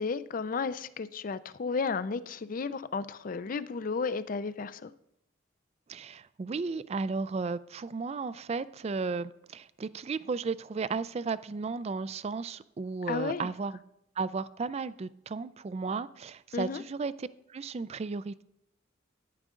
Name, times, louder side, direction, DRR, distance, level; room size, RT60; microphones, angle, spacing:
voice 1, 0.0-4.9 13.1-13.5 16.5-16.8, left 4 dB, 45° left, 15 dB, 0.4 m, -33 dB
voice 2, 5.9-13.8 14.2-18.4, right 4 dB, 30° right, 17 dB, 0.3 m, -34 dB
10.5 x 9.8 x 3.8 m, 0.78 s
head